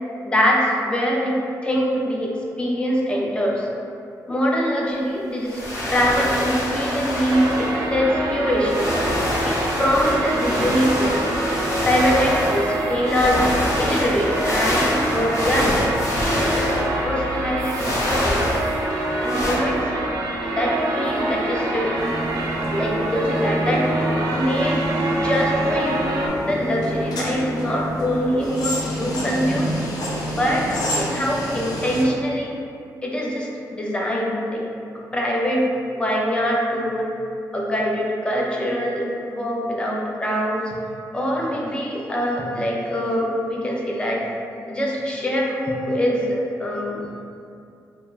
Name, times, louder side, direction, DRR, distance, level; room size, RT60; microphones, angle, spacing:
voice 1, 0.2-1.4 1.6-3.7 4.3-5.6 5.9-8.9 9.4-11.2 11.8-13.4 13.8-16.0 16.3-16.7 17.0-18.6 19.2-19.8 20.5-21.9 22.7-23.8 24.3-26.1 26.4-29.7 30.3-30.7 30.9-32.6 33.0-34.7 35.1-35.7 35.9-37.2 37.5-40.8 41.1-44.2 44.7-47.0, equal, 15° left, -2 dB, 0.3 m, -23 dB
sound 1, 5.4-7.7 8.6-12.7 13.0-17.1 17.6-18.9 19.2-19.5, left 1 dB, 50° left, 0.7 m, -26 dB
sound 2, 7.3-26.3, right 1 dB, 65° right, 0.4 m, -26 dB
sound 3, 21.9-32.0, equal, 80° left, 0.5 m, -28 dB
2.3 x 2.1 x 3.0 m, 2.5 s
wide cardioid pair, 135°, 7 cm